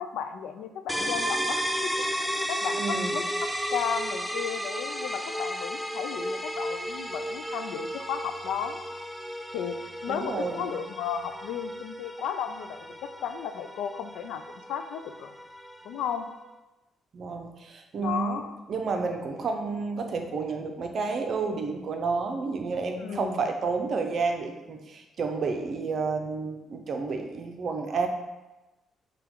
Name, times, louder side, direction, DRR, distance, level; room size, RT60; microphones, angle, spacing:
voice 1, 0.0-1.9 2.5-8.8 9.5-14.4 14.7-15.4 15.8-16.3 18.0-18.5 23.0-23.4, left 8 dB, 85° left, 9 dB, 0.3 m, -34 dB
sound 1, 0.9-16.5, equal, ahead, 0.3 m, -34 dB
voice 2, 2.8-3.2 10.1-10.7 17.1-18.4 18.7-28.1, right 4 dB, 55° right, 4 dB, 0.6 m, -30 dB
5.8 x 2.3 x 3.6 m, 1.1 s
cardioid pair, 90°, 0 cm